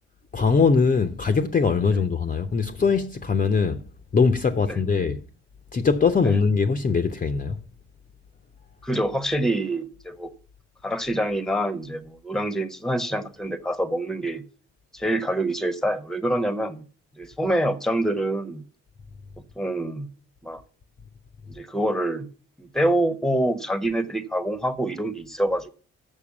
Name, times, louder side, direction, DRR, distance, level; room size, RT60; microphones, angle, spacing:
voice 1, 0.3-3.8 4.1-5.2 5.7-7.6, left 5 dB, 25° left, 0.7 m, -21 dB
voice 2, 8.8-10.3 10.8-14.4 14.9-16.8 17.2-18.6 19.6-20.1 20.4-20.6 21.5-22.3 22.6-25.7, right 1 dB, ahead, 1.0 m, -26 dB
7.2 x 6.4 x 7.1 m
figure-of-eight pair, 50°, 35 cm